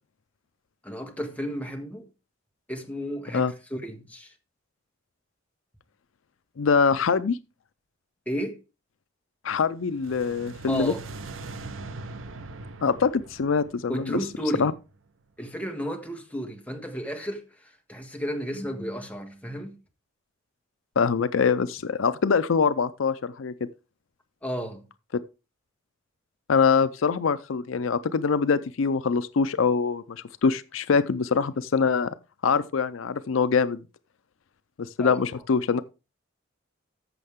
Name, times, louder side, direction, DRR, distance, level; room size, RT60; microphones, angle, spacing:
voice 1, 0.8-2.1 2.7-3.4 3.7-4.3 8.2-8.6 10.7-11.0 13.9-14.7 15.4-19.7 24.4-24.8 35.0-35.2, equal, 5° left, 1.6 m, -33 dB
voice 2, 6.6-7.4 9.4-10.9 12.8-14.1 14.6-14.7 21.0-23.5 26.5-32.1 32.4-33.8 34.8-35.8, left 5 dB, 75° left, 0.5 m, -24 dB
sound 1, 9.8-15.0, right 3 dB, 75° right, 0.8 m, -41 dB
14.0 x 6.5 x 3.6 m
head